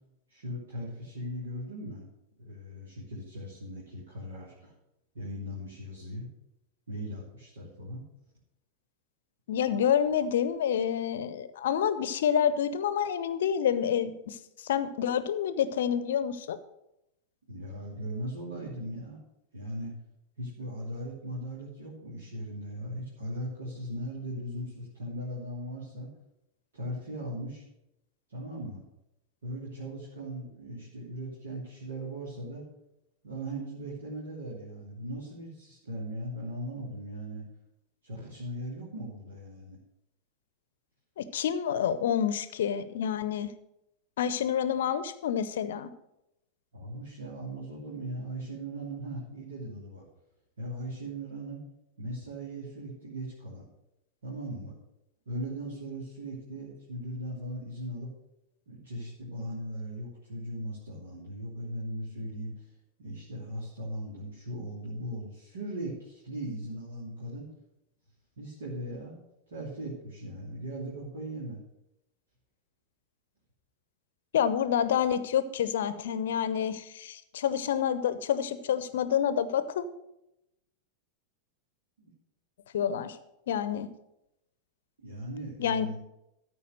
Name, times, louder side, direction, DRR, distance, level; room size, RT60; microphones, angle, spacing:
voice 1, 0.3-2.1 2.4-4.7 5.1-6.3 6.9-8.0 17.5-19.2 19.5-19.9 20.4-26.1 26.7-27.6 28.3-28.8 29.4-32.7 33.2-37.4 38.0-39.8 46.7-50.0 50.6-51.6 52.0-53.7 54.2-54.7 55.3-58.1 58.7-62.7 63.0-67.5 68.4-69.2 69.5-71.6 82.0-82.1 85.0-86.0, right 1 dB, 65° right, -7 dB, 2.8 m, -38 dB
voice 2, 9.5-16.6 41.2-43.5 44.2-45.9 74.3-79.8 82.7-83.2 83.5-83.9 85.6-85.9, left 8 dB, 60° left, 13 dB, 0.7 m, -28 dB
13.5 x 4.7 x 6.5 m, 0.85 s
figure-of-eight pair, 90°, 0 cm